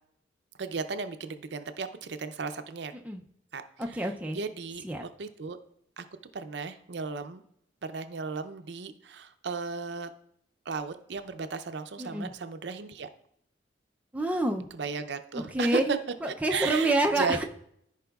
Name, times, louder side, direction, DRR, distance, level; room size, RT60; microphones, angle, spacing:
voice 1, 0.6-2.9 3.5-3.6 3.9-4.8 5.2-5.6 6.0-6.1 6.3-7.4 7.8-10.1 10.7-13.1 14.7-16.0 16.5-17.4, right 5 dB, 70° right, 9 dB, 0.5 m, -35 dB
voice 2, 3.8-4.4 4.8-5.0 12.0-12.3 14.1-14.7 15.3-15.8 16.2-17.4, right 1 dB, 10° right, 2 dB, 0.4 m, -27 dB
14.0 x 4.8 x 2.3 m, 0.72 s
head